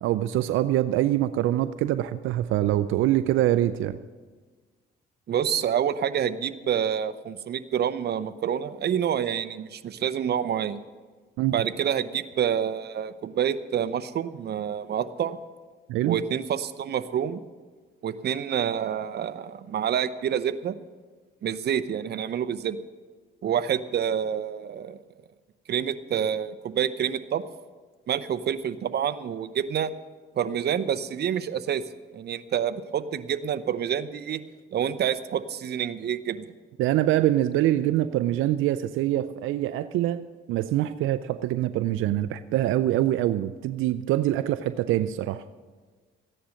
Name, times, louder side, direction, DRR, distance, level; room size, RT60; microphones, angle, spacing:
voice 1, 0.0-4.0 11.4-11.5 15.9-16.2 36.8-45.4, right 13 dB, 85° right, 12 dB, 0.5 m, -24 dB
voice 2, 5.3-10.8 11.5-15.4 16.0-17.4 18.0-20.7 21.4-22.8 23.4-25.0 25.7-27.4 28.1-29.9 30.4-31.8 32.1-34.4 34.7-36.5, right 9 dB, 55° right, 11 dB, 0.7 m, -27 dB
14.5 x 10.0 x 6.4 m, 1.4 s
cardioid pair, 90°, 20 cm